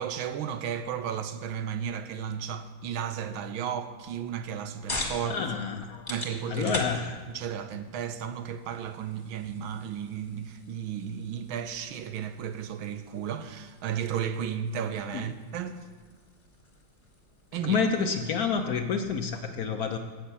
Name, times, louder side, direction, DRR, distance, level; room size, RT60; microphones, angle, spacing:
voice 1, 0.0-5.4 6.1-6.8 7.3-15.8 17.5-17.8, right 8 dB, 85° right, 1.6 m, -34 dB
sound 1, 4.2-19.4, left 2 dB, 25° left, 1.8 m, -43 dB
voice 2, 5.2-6.1 6.5-7.2 15.1-15.2 17.6-20.0, left 5 dB, 65° left, 1.0 m, -29 dB
13.0 x 6.6 x 8.2 m
omnidirectional pair, 2.2 m